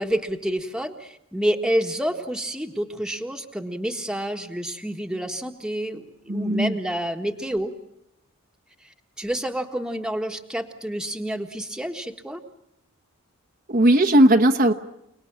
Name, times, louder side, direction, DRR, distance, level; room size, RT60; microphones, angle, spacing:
voice 1, 0.0-7.7 8.8-12.4, equal, 5° right, 4 dB, 1.6 m, -28 dB
voice 2, 6.3-6.8 13.7-14.7, right 1 dB, 40° right, 4 dB, 1.1 m, -17 dB
29.5 x 20.0 x 8.9 m, 0.82 s
head